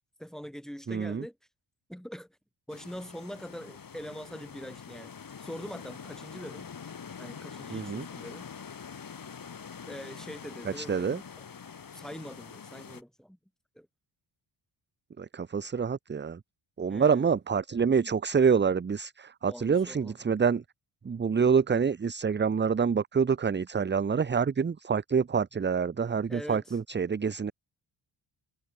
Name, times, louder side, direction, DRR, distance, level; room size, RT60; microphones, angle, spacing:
voice 1, 0.2-1.4 1.9-2.4 2.7-5.1 5.4-6.7 7.2-8.5 9.9-11.1 11.9-13.4 13.7-13.9 16.9-17.3 19.5-20.2 26.3-26.8, equal, ahead, 7.9 m, -43 dB
voice 2, 0.9-1.2 7.7-8.0 10.8-11.2 15.2-16.4 16.8-20.6 21.0-27.5, right 6 dB, 20° right, 0.6 m, -27 dB
sound 1, 2.7-13.0, left 6 dB, 40° left, 1.8 m, -45 dB
cardioid pair, 85°, 50 cm